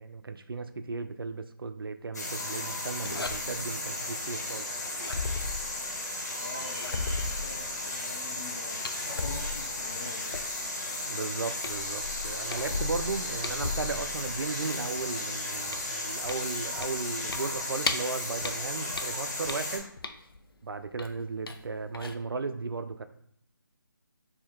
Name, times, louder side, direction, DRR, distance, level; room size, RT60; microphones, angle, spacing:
voice 1, 0.0-4.7 11.1-19.9 20.6-23.0, right 4 dB, 80° right, 10 dB, 0.5 m, -35 dB
sound 1, 2.1-19.8, left 2 dB, 45° left, 1.6 m, -35 dB
sound 2, 3.0-3.7 4.8-6.1 6.6-8.0 8.8-10.8 11.2-11.4 11.6-14.6 15.0-18.1 18.4-20.4 21.0-21.6 21.9-22.1, left 3 dB, 85° left, 0.5 m, -36 dB
voice 2, 6.4-10.4, left 3 dB, 15° left, 1 dB, 0.3 m, -45 dB
4.3 x 2.8 x 3.6 m, 0.68 s
figure-of-eight pair, 165°, 12 cm